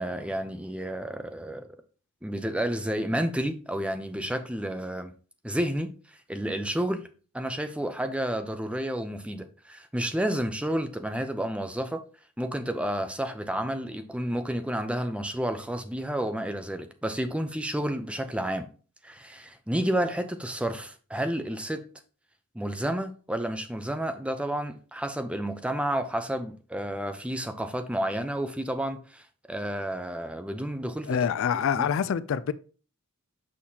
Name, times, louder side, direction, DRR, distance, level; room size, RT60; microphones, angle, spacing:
voice 1, 0.0-1.7 2.2-5.1 5.4-5.9 6.3-7.1 7.3-12.0 12.4-18.7 19.0-21.8 22.5-29.2 29.5-31.2 31.5-31.9, right 1 dB, 5° right, 0.5 m, -30 dB
voice 2, 31.1-32.5, left 7 dB, 60° left, 0.3 m, -26 dB
6.5 x 5.7 x 2.8 m
head